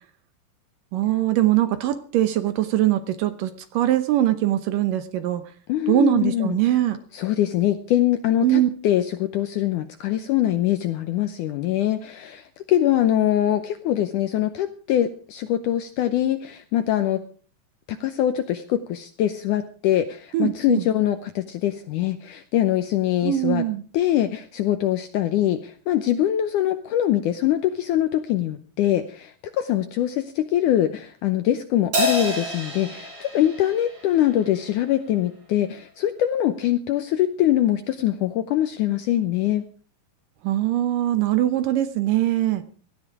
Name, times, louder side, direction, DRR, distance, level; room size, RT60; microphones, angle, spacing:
voice 1, 0.9-5.4 5.9-7.0 8.4-8.7 20.3-20.9 23.2-23.8 40.4-42.6, right 13 dB, 70° right, 11 dB, 2.2 m, -22 dB
voice 2, 5.7-6.6 7.1-17.2 17.9-23.6 23.9-39.6, left 12 dB, 75° left, 9 dB, 1.9 m, -23 dB
Crash cymbal, 31.9-34.6, equal, 25° right, 3.0 m, -28 dB
17.5 x 13.0 x 4.8 m, 0.42 s
omnidirectional pair, 4.5 m